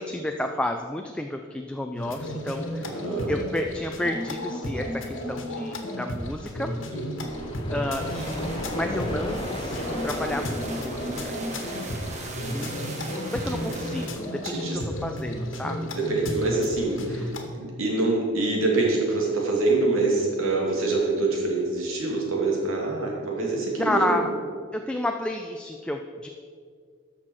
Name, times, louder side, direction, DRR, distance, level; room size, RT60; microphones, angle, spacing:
voice 1, 0.0-3.0 3.3-6.7 7.7-11.3 12.5-12.7 13.1-15.8 17.1-17.2 23.8-24.3 24.7-26.3, left 1 dB, 5° left, 4 dB, 0.3 m, -31 dB
sound 1, 2.0-17.5, left 1 dB, 70° left, 1.3 m, -33 dB
voice 2, 2.8-3.3 6.9-7.5 13.6-13.7 14.4-14.8 16.0-17.3 17.6-24.2, right 3 dB, 90° right, -2 dB, 2.5 m, -25 dB
sound 2, 7.2-12.9, left 1 dB, 25° left, 0.8 m, -36 dB
sound 3, 7.9-14.1, right 2 dB, 35° right, 1.3 m, -38 dB
13.5 x 6.0 x 4.7 m, 2.1 s
head